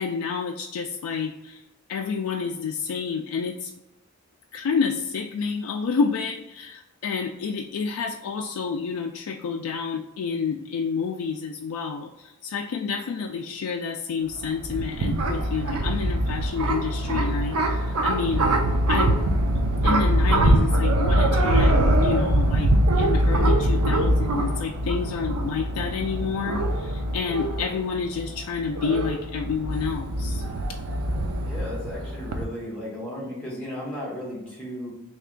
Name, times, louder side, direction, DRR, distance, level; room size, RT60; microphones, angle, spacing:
voice 1, 0.0-1.6 1.9-3.7 4.5-18.5 18.9-19.2 19.8-30.4, left 5 dB, 85° left, 2 dB, 0.3 m, -29 dB
sound 1, 14.3-32.4, right 1 dB, 85° right, 0.5 m, -23 dB
voice 2, 31.4-34.9, left 1 dB, 5° left, -5 dB, 1.2 m, -35 dB
3.3 x 2.9 x 3.7 m, 0.96 s
head